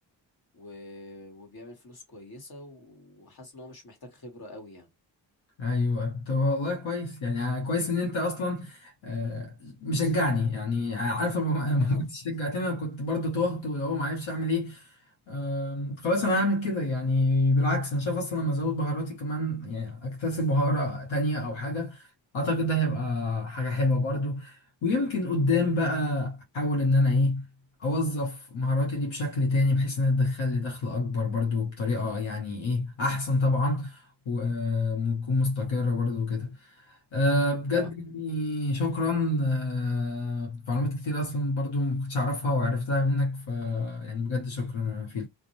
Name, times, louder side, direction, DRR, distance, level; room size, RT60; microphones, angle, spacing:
voice 1, 0.5-4.9 11.8-12.0 37.7-37.9, left 1 dB, 50° left, 1.4 m, -45 dB
voice 2, 5.6-14.9 15.3-22.1 22.3-27.4 27.8-36.6 36.9-45.3, left 2 dB, 85° left, 1.0 m, -27 dB
2.5 x 2.1 x 2.9 m
cardioid pair, 60°, 46 cm